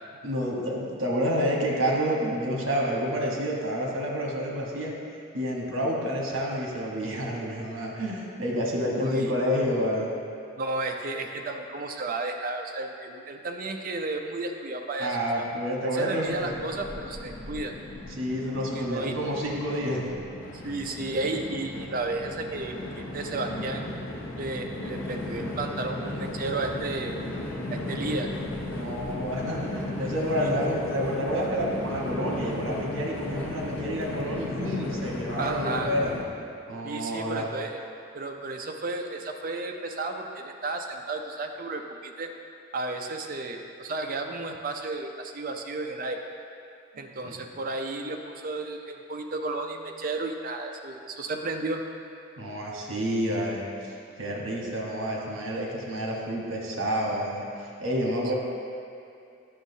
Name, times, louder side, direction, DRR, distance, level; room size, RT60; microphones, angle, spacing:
voice 1, 0.2-4.9 5.3-10.1 15.0-16.4 18.2-20.0 28.7-36.1 36.7-37.4 47.2-47.4 52.4-58.3, equal, 80° right, -2 dB, 1.1 m, -29 dB
voice 2, 8.8-9.3 10.6-15.5 15.8-17.7 18.7-19.2 20.6-23.9 24.4-27.2 27.7-28.3 30.4-30.5 35.4-35.9 36.8-37.8 38.1-42.3 42.7-46.2 47.0-51.8, right 2 dB, 40° right, 3 dB, 0.5 m, -33 dB
Train, 16.3-36.2, left 1 dB, 90° left, 0.9 m, -35 dB
10.0 x 6.1 x 2.7 m, 2.5 s
head